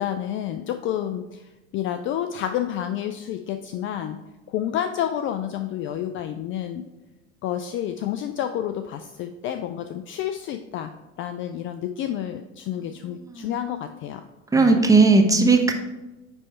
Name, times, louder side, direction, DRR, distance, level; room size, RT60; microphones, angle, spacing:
voice 1, 0.0-4.2 4.5-6.9 7.4-10.9 11.2-14.3 14.6-14.8, left 10 dB, 35° left, 8 dB, 0.4 m, -29 dB
voice 2, 13.3-13.6 14.5-15.7, right 3 dB, 10° right, 3 dB, 0.9 m, -17 dB
9.6 x 3.2 x 4.3 m, 1.1 s
hypercardioid pair, 90°, 37 cm